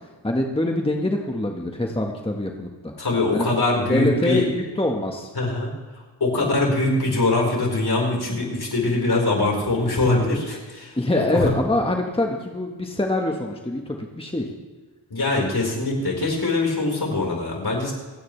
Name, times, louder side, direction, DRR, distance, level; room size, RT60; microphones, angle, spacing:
voice 1, 0.2-2.9 3.3-3.5 3.9-5.3 11.0-14.4, left 1 dB, 10° left, 1 dB, 1.5 m, -24 dB
voice 2, 3.0-4.4 5.3-5.7 6.2-11.5 15.1-17.9, left 2 dB, 55° left, -1 dB, 4.8 m, -22 dB
27.5 x 9.4 x 3.4 m, 1.3 s
cardioid pair, 60°, 45 cm